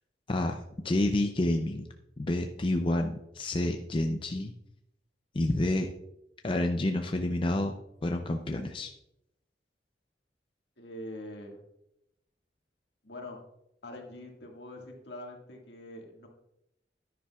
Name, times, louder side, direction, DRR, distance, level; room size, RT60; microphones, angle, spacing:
voice 1, 0.3-0.6 0.8-1.9 2.2-4.5 5.3-5.9 6.4-7.7 8.0-8.9, left 1 dB, 30° left, 4 dB, 0.5 m, -29 dB
voice 2, 10.8-11.6 13.0-13.4 13.8-16.3, left 1 dB, 70° left, 1 dB, 1.8 m, -44 dB
10.5 x 9.9 x 2.3 m, 0.82 s
head